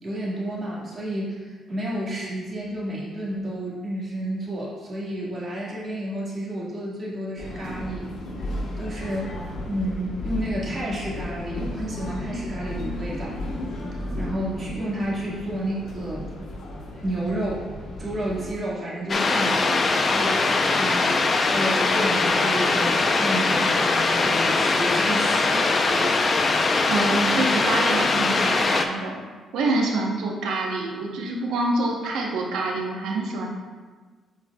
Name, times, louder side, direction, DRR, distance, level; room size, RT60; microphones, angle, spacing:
voice 1, 0.0-8.1 8.4-9.3 9.6-13.4 14.2-16.3 17.0-17.7 18.0-19.8 20.1-20.4 20.7-21.1 21.4-26.3, right 1 dB, 40° right, -5 dB, 1.8 m, -31 dB
sound 1, 7.4-18.5, left 1 dB, 65° left, 1.2 m, -34 dB
sound 2, 19.1-28.8, left 3 dB, 40° left, 0.5 m, -21 dB
voice 2, 26.9-33.5, right 2 dB, 85° right, -1 dB, 1.0 m, -26 dB
8.8 x 4.6 x 2.3 m, 1.4 s
cardioid pair, 90°, 0 cm